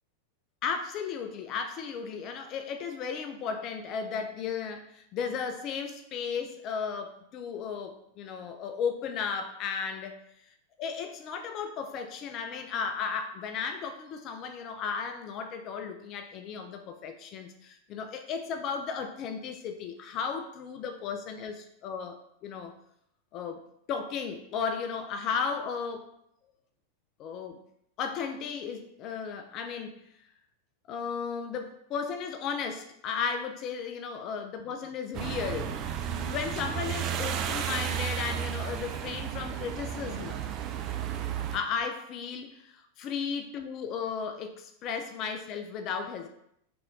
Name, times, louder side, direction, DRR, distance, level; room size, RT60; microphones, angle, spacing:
voice 1, 0.6-10.2 10.5-22.7 23.3-23.6 23.9-26.1 27.2-27.6 28.0-30.0 30.9-40.4 41.5-46.3, left 6 dB, 35° left, 6 dB, 0.3 m, -35 dB
sound 1, 35.1-41.6, right 9 dB, 35° right, 0.4 m, -33 dB
3.0 x 2.9 x 3.5 m, 0.75 s
figure-of-eight pair, 90°, 0 cm